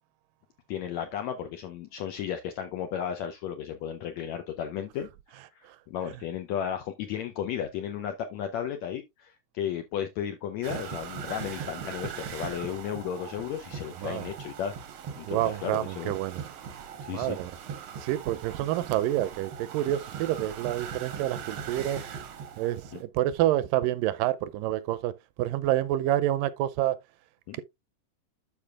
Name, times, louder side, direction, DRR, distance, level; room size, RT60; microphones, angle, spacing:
voice 1, 0.7-14.7 15.2-16.2 17.0-17.4 22.9-23.0 27.5-27.6, left 9 dB, 80° left, 1.6 m, -34 dB
sound 1, 10.6-23.0, right 7 dB, 65° right, 1.3 m, -40 dB
voice 2, 15.3-16.4 17.1-17.5 18.0-22.0 22.6-25.1 25.4-27.0, right 14 dB, 80° right, 2.2 m, -28 dB
12.0 x 4.8 x 2.4 m
omnidirectional pair, 4.0 m